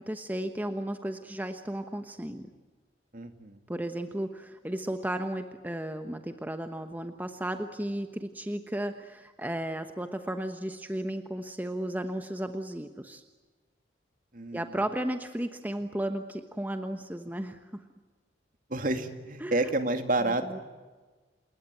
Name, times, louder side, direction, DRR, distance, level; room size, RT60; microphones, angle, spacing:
voice 1, 0.0-2.5 3.7-13.2 14.5-17.8 19.4-19.7 20.3-20.6, right 1 dB, 10° right, 7 dB, 1.1 m, -34 dB
voice 2, 3.1-3.6 14.3-14.8 18.7-20.6, right 2 dB, 45° right, 7 dB, 2.3 m, -29 dB
28.0 x 21.0 x 9.0 m, 1.3 s
head